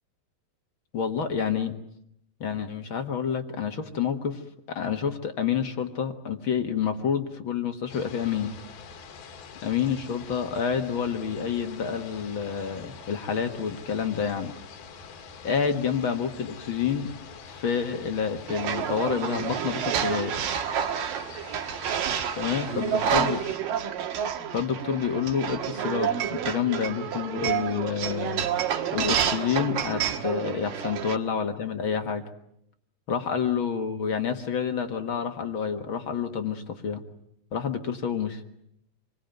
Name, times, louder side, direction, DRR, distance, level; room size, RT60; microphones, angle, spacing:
voice 1, 0.9-1.7 2.4-4.4 4.7-8.5 9.6-14.5 15.4-17.1 17.5-20.3 22.4-23.4 24.5-28.5 28.9-32.2 33.1-37.0 37.5-38.4, left 7 dB, 50° left, 6 dB, 1.6 m, -28 dB
sound 1, 7.9-23.6, left 5 dB, 85° left, 3.9 m, -45 dB
sound 2, 18.5-31.2, right 8 dB, 70° right, 3.2 m, -29 dB
27.5 x 22.0 x 9.1 m, 0.75 s
omnidirectional pair, 4.2 m